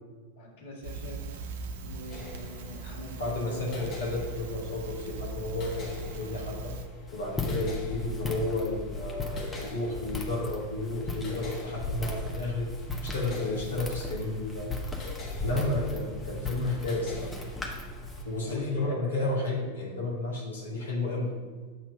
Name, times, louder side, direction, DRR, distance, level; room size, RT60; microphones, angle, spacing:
voice 1, 0.4-1.3 1.8-3.8 18.4-18.9, equal, 55° left, -2 dB, 1.5 m, -43 dB
Crackle, 0.8-6.9, right 3 dB, 55° right, 0.6 m, -40 dB
sound 1, 2.1-18.5, left 4 dB, 35° left, 1.4 m, -46 dB
voice 2, 3.2-6.7 7.1-12.7 13.0-14.8 15.4-17.3 18.2-21.3, left 2 dB, 70° left, -4 dB, 1.5 m, -32 dB
Walk footsteps, 7.1-18.2, left 2 dB, 10° left, 1.1 m, -36 dB
8.0 x 2.9 x 6.0 m, 1.5 s
figure-of-eight pair, 90°, 0 cm